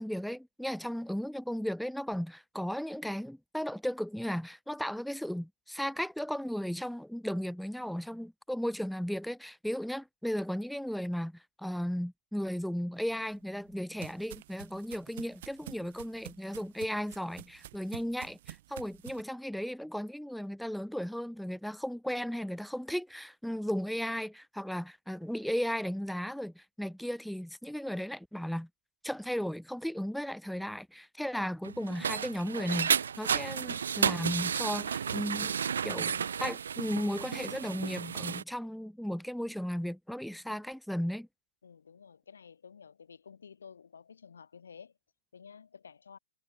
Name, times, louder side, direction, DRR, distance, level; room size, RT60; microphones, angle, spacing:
voice 1, 0.0-28.7 29.0-35.5 35.8-41.3, equal, ahead, 2.3 m, -35 dB
sound 1, 13.1-19.2, right 15 dB, 55° right, 4.1 m, -49 dB
sound 2, 31.6-38.4, right 7 dB, 75° right, 0.9 m, -32 dB
voice 2, 41.6-44.9 45.3-46.2, left 6 dB, 75° left, 4.7 m, -52 dB
hypercardioid pair, 115°, 0 cm